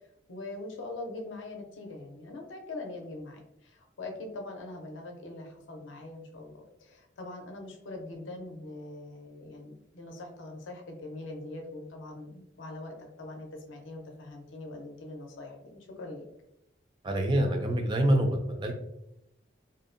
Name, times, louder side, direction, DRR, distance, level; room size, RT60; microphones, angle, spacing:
voice 1, 0.3-16.2, left 2 dB, 85° left, 2 dB, 0.5 m, -42 dB
voice 2, 17.0-18.7, right 1 dB, 25° right, 2 dB, 0.3 m, -26 dB
2.6 x 2.0 x 2.5 m, 0.83 s
head